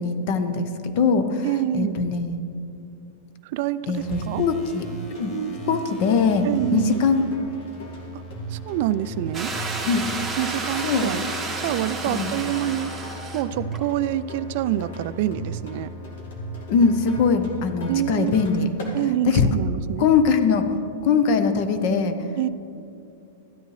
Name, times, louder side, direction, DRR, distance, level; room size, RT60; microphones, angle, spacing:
voice 1, 0.0-1.5 1.7-2.4 3.9-4.9 5.2-5.3 5.7-6.5 6.7-7.2 9.9-10.1 10.8-11.1 12.1-12.3 16.7-18.7 19.3-19.5 20.0-20.7 21.0-22.1, left 5 dB, 50° left, 9 dB, 0.8 m, -21 dB
voice 2, 1.4-2.0 3.4-4.4 5.3-5.8 6.4-7.0 8.1-8.2 8.5-9.5 10.4-11.3 11.6-12.9 13.3-15.9 17.9-18.3 18.9-20.1 22.4-22.5, right 13 dB, 55° right, 14 dB, 0.3 m, -26 dB
sound 1, 3.9-18.0, left 2 dB, 30° left, 1.3 m, -41 dB
sound 2, 4.8-19.0, right 3 dB, 70° left, 2.0 m, -38 dB
sound 3, 9.3-13.4 13.7-13.8, right 3 dB, 5° right, 1.4 m, -31 dB
13.0 x 9.2 x 3.2 m, 2.7 s
hypercardioid pair, 135°, 0 cm